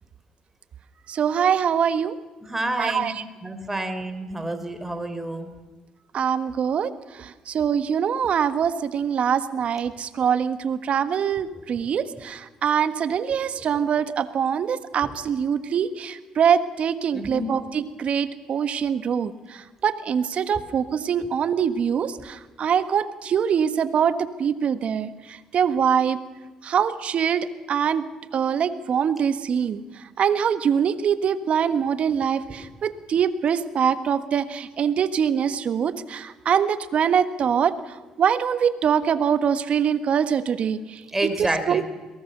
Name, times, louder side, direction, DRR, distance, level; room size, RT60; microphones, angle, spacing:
voice 1, 1.1-2.1 2.8-3.1 6.1-26.2 26.6-28.1 28.3-29.8 30.2-37.8 38.2-41.8, right 7 dB, 55° right, 11 dB, 1.5 m, -24 dB
voice 2, 2.4-3.0 3.4-5.5 15.0-15.1 17.1-17.6 41.1-41.8, right 1 dB, 15° right, 7 dB, 3.9 m, -28 dB
22.5 x 18.5 x 6.8 m, 1.2 s
supercardioid pair, 65°, 2 cm